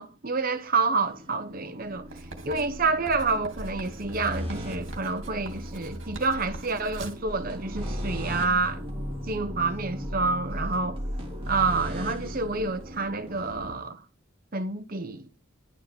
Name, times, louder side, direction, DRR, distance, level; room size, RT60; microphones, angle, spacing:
voice 1, 0.0-2.1 2.4-8.8 9.3-11.0 11.5-14.0 14.5-15.3, right 4 dB, 40° right, 1.0 m, -28 dB
sound 1, 1.1-13.7, equal, 25° right, 3.2 m, -36 dB
Writing, 2.1-7.3, right 2 dB, 60° right, 2.8 m, -44 dB
sound 2, 8.5-12.2, equal, ahead, 3.8 m, -51 dB
11.5 x 6.5 x 7.0 m
head